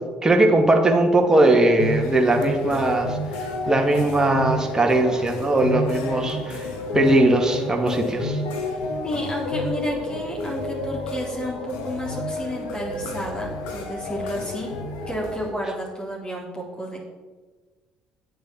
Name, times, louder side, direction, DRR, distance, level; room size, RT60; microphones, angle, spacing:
voice 1, 0.2-3.2 3.7-6.6 6.9-8.4, right 2 dB, 15° right, 2 dB, 2.3 m, -19 dB
sound 1, 1.8-15.5, left 1 dB, 80° left, 1.8 m, -30 dB
voice 2, 9.0-14.7 15.1-17.0, equal, 25° left, -2 dB, 3.6 m, -31 dB
10.0 x 7.4 x 7.0 m, 1.3 s
hypercardioid pair, 60°, 4 cm